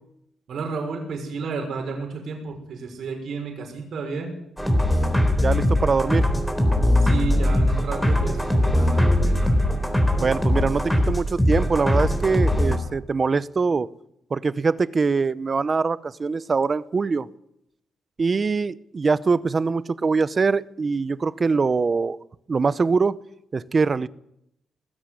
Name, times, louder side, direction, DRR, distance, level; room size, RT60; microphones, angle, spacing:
voice 1, 0.5-4.4 7.0-9.7, right 4 dB, 65° right, 6.1 m, -32 dB
sound 1, 4.6-12.8, left 1 dB, ahead, 4.0 m, -21 dB
voice 2, 5.4-6.3 10.2-13.9 14.3-17.3 18.2-22.2 22.5-23.2 23.5-24.1, right 4 dB, 30° right, 0.8 m, -23 dB
20.5 x 15.5 x 9.9 m
cardioid pair, 135°, 0 cm